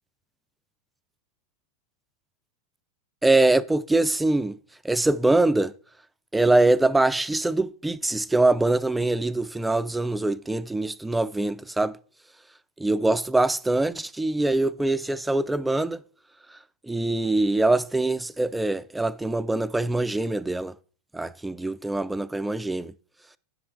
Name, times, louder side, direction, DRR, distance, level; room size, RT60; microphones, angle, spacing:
voice 1, 3.2-4.6 4.8-5.7 6.3-12.0 12.8-16.0 16.9-20.7 21.1-22.9, right 2 dB, 5° right, 0.4 m, -23 dB
9.7 x 6.2 x 3.3 m
figure-of-eight pair, 90°, 0 cm